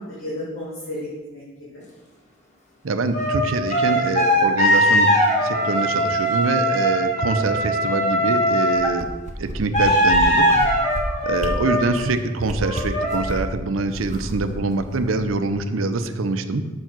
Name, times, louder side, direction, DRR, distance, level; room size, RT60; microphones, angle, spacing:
voice 1, 0.0-1.8 11.5-11.6, left 1 dB, 75° left, -9 dB, 2.3 m, -34 dB
voice 2, 2.8-5.1 5.4-9.1 9.4-10.6 11.2-16.7, right 3 dB, 75° right, 9 dB, 0.6 m, -24 dB
sound 1, 3.1-8.9 9.7-12.1 12.6-13.2, equal, 35° left, 1.5 m, -20 dB
sound 2, 8.7-9.8 10.1-10.2 10.5-11.0 11.4-11.5 11.9-12.1 12.4-13.5 13.9-15.5 15.9-16.0, right 1 dB, 35° right, 0.7 m, -32 dB
6.5 x 4.6 x 6.0 m, 1.3 s
head